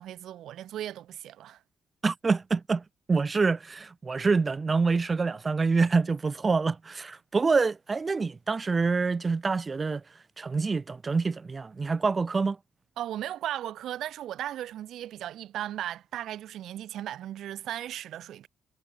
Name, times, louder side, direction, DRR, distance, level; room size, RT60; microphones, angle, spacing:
voice 1, 0.0-1.6 13.0-18.5, right 12 dB, 75° right, 2.3 m, -36 dB
voice 2, 2.0-2.8 3.1-10.0 10.4-12.6, right 4 dB, 30° right, 3.3 m, -26 dB
cardioid pair, 90°, 0 cm